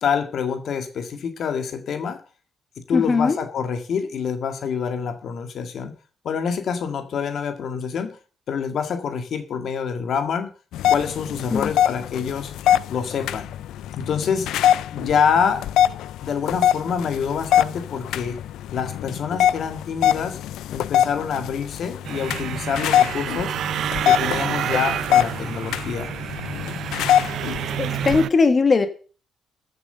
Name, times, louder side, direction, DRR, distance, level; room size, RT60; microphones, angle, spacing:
voice 1, 0.0-2.2 2.9-6.0 6.2-8.2 8.5-10.5 10.9-12.5 12.9-13.5 14.0-14.5 14.9-15.7 16.2-18.4 18.7-20.4 20.7-23.6 24.1-26.1, left 6 dB, 65° left, 1.9 m, -26 dB
voice 2, 2.9-3.4 11.5-11.7 27.4-28.9, left 4 dB, 35° left, 1.7 m, -20 dB
sound 1, 10.7-28.2, left 11 dB, 85° left, 0.5 m, -23 dB
sound 2, 22.0-28.3, right 10 dB, 70° right, 0.6 m, -29 dB
14.0 x 7.3 x 6.8 m
cardioid pair, 90°, 0 cm